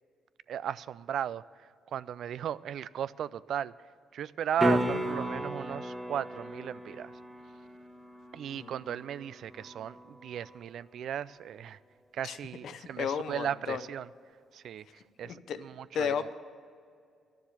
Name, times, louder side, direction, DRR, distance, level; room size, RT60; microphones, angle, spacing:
voice 1, 0.5-1.4 1.9-3.7 4.1-7.1 8.3-11.8 12.1-14.1 14.5-14.8 15.2-16.3, right 9 dB, 70° right, 18 dB, 0.3 m, -36 dB
sound 1, 4.6-10.6 15.3-15.4, equal, 5° right, 1.3 m, -35 dB
voice 2, 8.5-9.0 12.2-12.4 12.6-13.8 15.2-15.6 15.9-16.3, left 7 dB, 70° left, 11 dB, 0.7 m, -34 dB
11.5 x 7.2 x 9.1 m, 2.3 s
cardioid pair, 90°, 0 cm